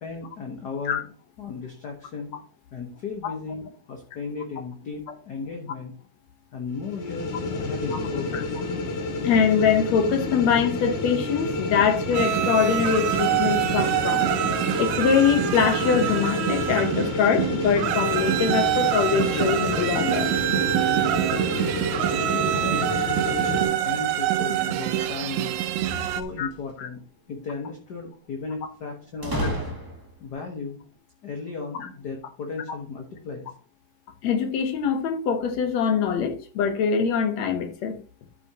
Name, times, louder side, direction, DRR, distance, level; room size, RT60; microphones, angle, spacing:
voice 1, 0.0-1.0 1.4-2.3 2.7-5.9 6.5-8.6 10.8-10.9 22.1-22.9 23.2-25.5 26.0-27.0 27.3-29.6 30.2-30.8 31.2-33.5, left 4 dB, 50° left, 2 dB, 1.3 m, -35 dB
sound 1, 6.7-23.6, left 2 dB, 85° left, 2.8 m, -29 dB
voice 2, 9.2-14.3 14.8-20.3 26.4-26.5 26.8-26.9 34.2-38.0, left 7 dB, 70° left, 6 dB, 2.2 m, -23 dB
sound 2, 12.1-26.2, right 13 dB, 80° right, 2.0 m, -25 dB
sound 3, 25.8-26.8 29.2-30.3, equal, 10° right, 1.7 m, -31 dB
13.0 x 5.7 x 2.9 m, 0.39 s
omnidirectional pair, 3.4 m